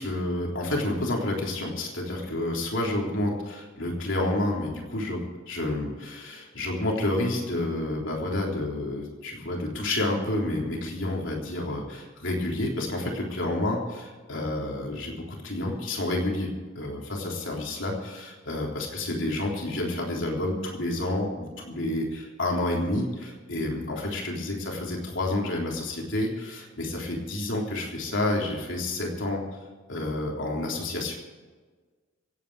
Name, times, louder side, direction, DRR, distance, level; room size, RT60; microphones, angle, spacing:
voice 1, 0.0-29.4 29.9-31.1, left 1 dB, 70° left, -1 dB, 3.5 m, -29 dB
26.5 x 8.9 x 4.8 m, 1.4 s
head